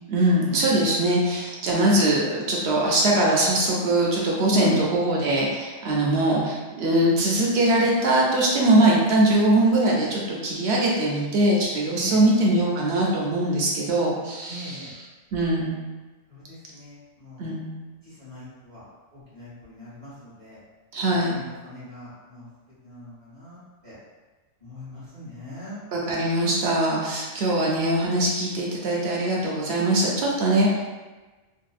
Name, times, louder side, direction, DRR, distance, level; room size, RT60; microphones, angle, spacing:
voice 1, 0.1-14.8 15.3-15.7 17.4-17.7 20.9-21.4 25.9-30.8, right 1 dB, 65° right, -4 dB, 0.8 m, -22 dB
voice 2, 11.9-12.2 14.5-14.9 16.3-17.5 18.0-20.6 21.0-22.5 22.8-24.0 24.6-25.8, equal, 20° left, -11 dB, 0.8 m, -41 dB
2.6 x 2.1 x 2.4 m, 1.2 s
omnidirectional pair, 1.4 m